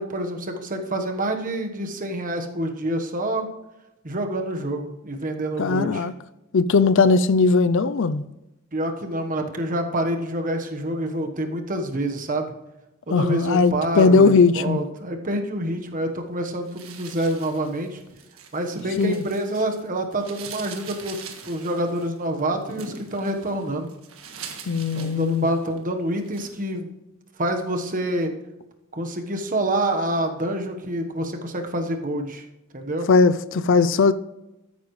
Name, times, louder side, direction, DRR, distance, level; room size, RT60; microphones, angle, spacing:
voice 1, 0.0-3.5 4.0-6.1 8.7-12.5 13.1-18.0 18.5-23.9 24.9-26.9 27.4-28.3 28.9-32.4 32.7-33.1, right 1 dB, 40° right, 1.2 m, -27 dB
voice 2, 5.6-6.1 6.5-8.2 13.1-14.8 19.0-19.2 24.7-25.5 33.1-34.1, left 4 dB, 60° left, 0.5 m, -18 dB
sound 1, 16.7-19.8 20.1-25.8 26.2-26.6, right 5 dB, 70° right, 1.6 m, -42 dB
13.5 x 9.6 x 3.2 m
head